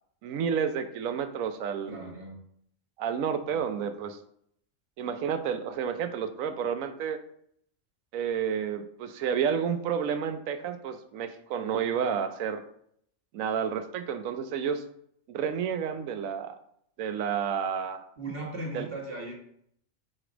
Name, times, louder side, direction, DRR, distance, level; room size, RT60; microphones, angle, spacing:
voice 1, 0.2-2.1 3.0-4.2 5.0-7.2 8.1-12.6 13.3-14.8 15.3-16.6 17.0-18.0 18.7-18.9, right 7 dB, 90° right, 9 dB, 1.0 m, -30 dB
voice 2, 1.9-2.4 18.2-19.3, right 2 dB, 45° right, 0 dB, 1.5 m, -37 dB
4.8 x 4.3 x 5.0 m, 0.68 s
omnidirectional pair, 1.4 m